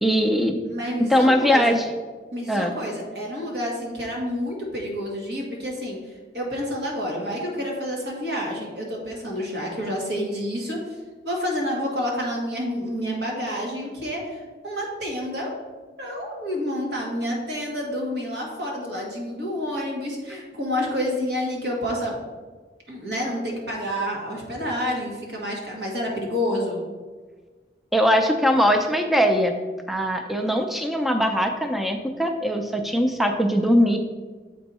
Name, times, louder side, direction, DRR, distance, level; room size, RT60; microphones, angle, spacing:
voice 1, 0.0-0.6 1.0-1.9 2.5-2.7 27.9-29.5 29.9-34.0, equal, ahead, 5 dB, 0.4 m, -21 dB
voice 2, 0.6-1.8 2.3-6.0 6.3-10.8 11.2-15.5 16.0-22.2 22.9-26.8, equal, 75° right, -1 dB, 1.7 m, -29 dB
7.7 x 4.5 x 4.1 m, 1.4 s
head